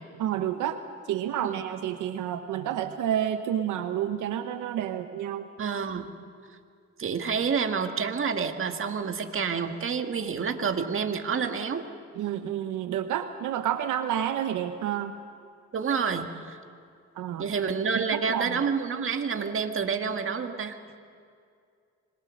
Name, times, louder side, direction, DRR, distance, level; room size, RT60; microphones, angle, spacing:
voice 1, 0.2-0.8 1.1-5.4 12.2-15.1 17.2-17.5 18.0-18.6, right 10 dB, 85° right, 8 dB, 1.0 m, -29 dB
voice 2, 5.6-6.1 7.0-11.8 15.7-16.6 17.4-20.8, right 6 dB, 45° right, 5 dB, 1.8 m, -28 dB
26.0 x 21.5 x 6.5 m, 2.3 s
cardioid pair, 90°, 30 cm